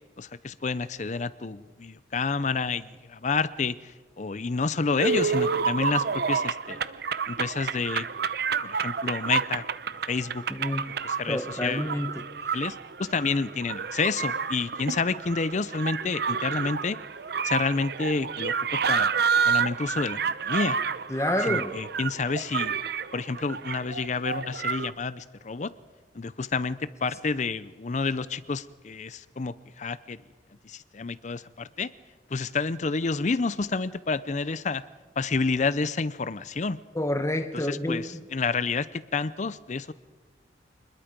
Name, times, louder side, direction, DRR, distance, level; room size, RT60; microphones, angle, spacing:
voice 1, 0.2-6.8 7.3-8.0 8.6-9.7 10.1-10.4 11.0-11.9 12.5-17.0 17.4-19.1 19.4-20.8 21.4-22.8 23.1-25.7 26.1-30.2 30.6-31.9 32.3-34.8 35.2-36.8 37.5-39.9, left 4 dB, 40° left, 0.5 m, -29 dB
sound 1, 5.0-24.9, right 6 dB, 60° right, 0.7 m, -29 dB
voice 2, 10.5-10.9 11.3-12.6 21.1-21.8 36.9-38.1, left 1 dB, 15° left, 1.0 m, -29 dB
26.5 x 21.0 x 5.2 m
head